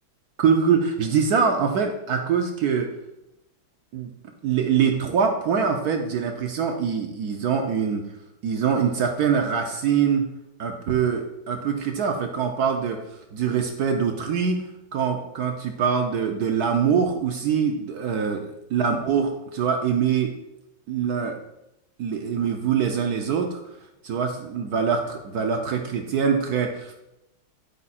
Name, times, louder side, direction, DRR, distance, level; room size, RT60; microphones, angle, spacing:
voice 1, 0.4-2.9 3.9-4.1 4.4-8.1 8.4-10.3 10.6-13.0 13.3-14.6 14.9-20.3 20.9-21.4 22.0-23.6 24.0-26.9, right 6 dB, 70° right, 4 dB, 0.9 m, -24 dB
9.9 x 4.7 x 4.2 m, 0.89 s
omnidirectional pair, 2.3 m